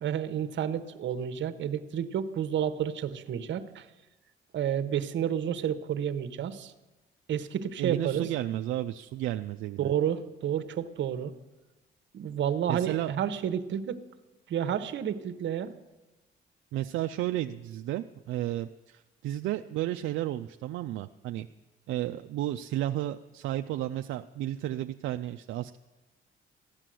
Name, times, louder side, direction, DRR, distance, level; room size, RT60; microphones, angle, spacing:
voice 1, 0.0-3.9 4.5-6.7 7.3-8.3 9.8-11.3 12.1-14.0 14.5-15.7, right 9 dB, 70° right, 10 dB, 1.0 m, -30 dB
voice 2, 7.8-9.9 12.7-13.1 16.7-21.5 21.9-25.8, right 13 dB, 85° right, 7 dB, 0.5 m, -32 dB
14.5 x 9.9 x 7.7 m, 1.1 s
cardioid pair, 90°, 20 cm